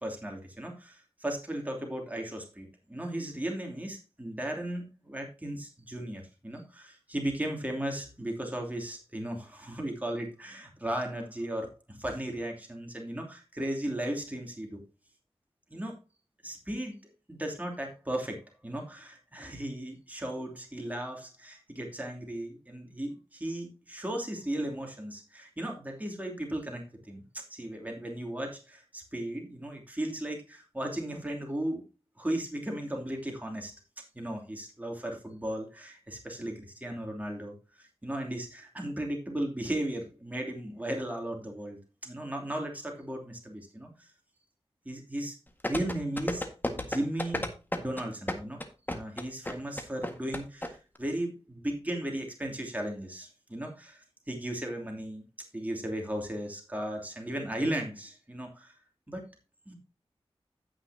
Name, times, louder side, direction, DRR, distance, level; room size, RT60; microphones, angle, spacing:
voice 1, 0.0-14.8 15.7-16.0 16.4-16.9 17.3-27.2 27.5-31.8 32.2-33.7 34.1-44.1 44.8-45.3 45.7-48.6 48.9-55.2 55.5-58.7 59.1-59.2 59.7-59.8, right 1 dB, 15° right, 1 dB, 2.9 m, -36 dB
sound 1, 45.6-50.7 50.9-51.0, left 1 dB, 20° left, 1.7 m, -32 dB
16.0 x 5.9 x 2.8 m, 0.30 s
wide cardioid pair, 55°, 10 cm